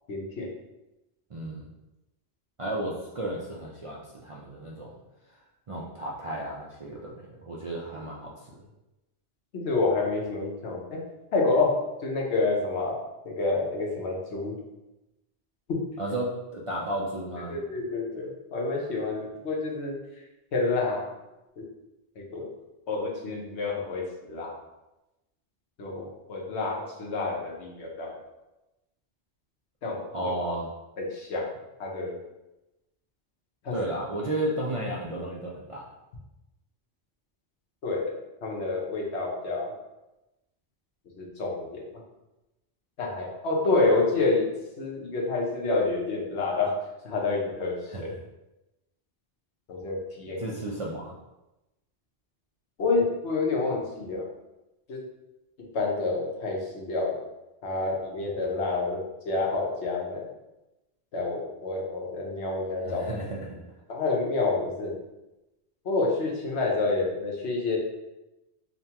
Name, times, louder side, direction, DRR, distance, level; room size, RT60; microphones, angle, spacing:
voice 1, 0.1-0.5 9.5-11.0 11.3-14.6 15.7-15.8 17.5-20.0 20.5-21.1 21.6-21.7 22.2-22.5 22.9-24.6 25.8-28.2 29.8-30.3 31.0-31.5 31.8-32.2 33.6-33.8 37.8-38.1 38.4-39.7 41.2-42.0 43.0-44.4 44.8-46.8 47.0-48.1 49.7-50.4 52.8-54.3 54.9-55.0 55.6-57.2 57.6-60.3 61.1-63.0 63.9-65.0 65.8-67.8, left 3 dB, 80° left, -2 dB, 1.1 m, -28 dB
voice 2, 1.3-1.7 2.6-5.0 5.7-8.6 16.0-17.6 30.1-30.7 33.7-35.9 47.9-48.2 50.4-51.2 62.8-63.6, right 1 dB, 50° right, -4 dB, 0.4 m, -33 dB
5.4 x 2.2 x 2.8 m, 0.97 s
omnidirectional pair, 1.1 m